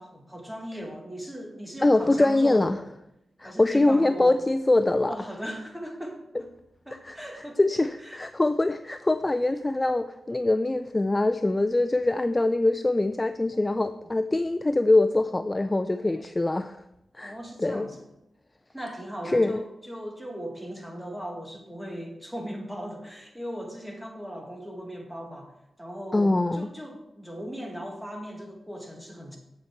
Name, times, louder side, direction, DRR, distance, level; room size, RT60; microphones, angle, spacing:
voice 1, 0.0-2.9 3.4-4.4 5.1-6.5 6.8-7.6 8.0-8.2 13.5-13.7 14.0-14.1 15.8-16.3 17.2-18.1 18.7-25.5 25.8-29.4, equal, ahead, 1 dB, 1.7 m, -38 dB
voice 2, 1.8-2.8 3.4-5.1 7.0-16.8 17.1-17.3 17.6-17.9 19.3-19.6 26.1-26.7, left 2 dB, 20° left, 10 dB, 0.3 m, -23 dB
7.8 x 6.8 x 4.5 m, 0.85 s
wide cardioid pair, 100°, 0 cm